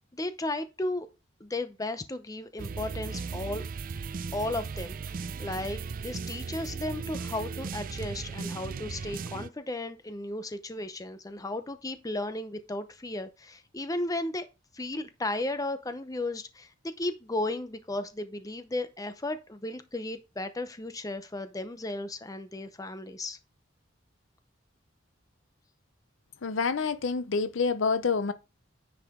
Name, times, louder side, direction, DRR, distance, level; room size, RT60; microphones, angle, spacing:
voice 1, 0.1-1.1 1.4-3.6 4.3-14.5 14.7-23.4, left 2 dB, 20° left, 0.7 m, -35 dB
sound 1, 2.6-9.5, right 5 dB, 45° right, 0.4 m, -37 dB
voice 2, 26.4-28.3, left 5 dB, 80° left, 0.7 m, -27 dB
9.7 x 4.9 x 3.6 m
head